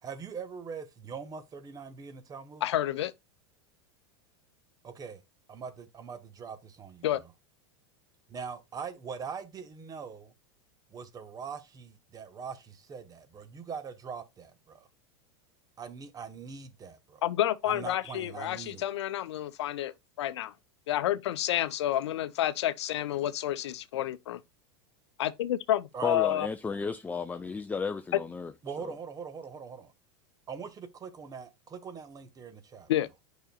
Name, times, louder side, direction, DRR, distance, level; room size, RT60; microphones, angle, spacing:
voice 1, 0.0-2.6 4.8-5.2 5.5-7.3 8.3-10.3 10.9-14.9 15.8-17.2 17.6-18.8 25.9-26.2 28.6-29.9 30.5-32.9, right 6 dB, 25° right, 1.1 m, -42 dB
voice 2, 2.6-3.1 7.0-7.2 17.2-19.9 20.2-20.5 20.9-24.4 25.2-26.5 28.1-28.2 32.9-33.1, left 12 dB, 80° left, 0.5 m, -29 dB
voice 3, 26.0-28.5 28.8-28.9, left 5 dB, 10° left, 0.4 m, -33 dB
8.9 x 5.1 x 2.3 m
hypercardioid pair, 115°, 14 cm